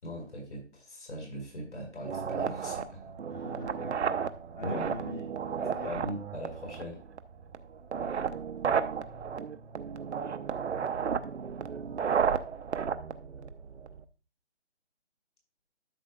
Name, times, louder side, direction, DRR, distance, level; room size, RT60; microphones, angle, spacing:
voice 1, 0.0-3.1 4.6-4.9 5.8-7.0, equal, 80° left, 1 dB, 5.2 m, -40 dB
sound 1, 2.0-14.0, right 7 dB, 70° right, 0.8 m, -33 dB
voice 2, 3.3-4.2 4.5-6.0, left 2 dB, 45° left, 2 dB, 1.2 m, -42 dB
12.5 x 6.4 x 2.4 m, 0.37 s
hypercardioid pair, 160°, 35 cm